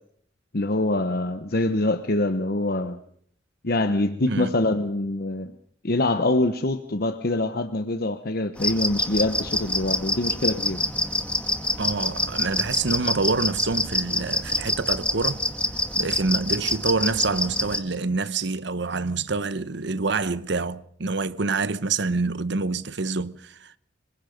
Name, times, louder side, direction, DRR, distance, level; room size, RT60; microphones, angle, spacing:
voice 1, 0.5-3.0 3.6-5.5 5.8-10.8, left 2 dB, 55° left, 1.1 m, -24 dB
sound 1, 8.6-17.8, left 1 dB, 5° left, 2.1 m, -26 dB
voice 2, 11.8-15.4 16.0-23.8, right 3 dB, 65° right, 1.0 m, -27 dB
26.0 x 23.0 x 5.3 m
head